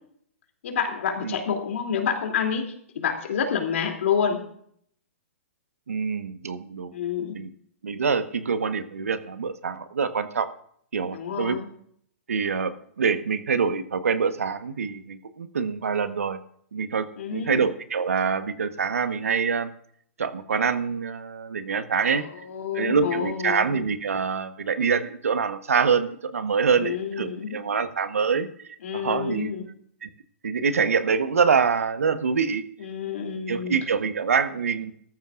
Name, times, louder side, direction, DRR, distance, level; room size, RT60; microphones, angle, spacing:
voice 1, 0.6-2.6 2.9-4.4 6.9-7.4 11.1-11.7 17.2-17.6 22.1-23.7 26.8-27.6 28.8-29.6 32.8-33.7, left 7 dB, 70° left, 3 dB, 3.0 m, -28 dB
voice 2, 5.9-6.9 7.3-7.5 7.8-10.5 10.9-11.5 12.3-16.4 16.7-19.7 20.2-22.2 22.7-28.5 28.9-29.5 30.0-30.1 30.4-32.6 33.5-34.9, right 5 dB, 85° right, 10 dB, 1.3 m, -25 dB
17.5 x 13.5 x 2.6 m, 0.65 s
hypercardioid pair, 135°, 8 cm